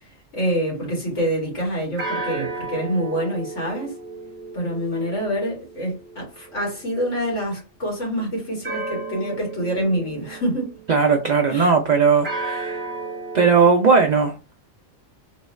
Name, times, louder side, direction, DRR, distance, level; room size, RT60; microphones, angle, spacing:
voice 1, 0.0-4.0 4.5-10.7 11.5-11.8, equal, 70° left, 2.1 m, -26 dB
sound 1, 2.0-6.9 8.6-11.0 12.2-13.7, right 3 dB, 45° right, 1.0 m, -33 dB
voice 2, 10.9-12.8 13.3-14.3, right 5 dB, 70° right, 0.4 m, -17 dB
3.5 x 2.3 x 3.1 m
omnidirectional pair, 1.3 m